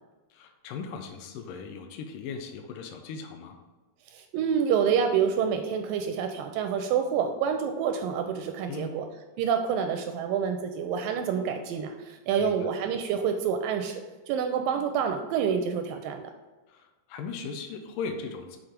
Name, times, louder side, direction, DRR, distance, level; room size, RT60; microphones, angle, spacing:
voice 1, 0.3-3.6 8.7-8.9 12.4-12.5 16.7-18.6, left 5 dB, 75° left, 4 dB, 2.1 m, -38 dB
voice 2, 4.1-9.0 9.4-14.0 14.3-16.3, right 7 dB, 80° right, 5 dB, 2.1 m, -27 dB
6.0 x 5.4 x 5.0 m, 1.2 s
omnidirectional pair, 4.3 m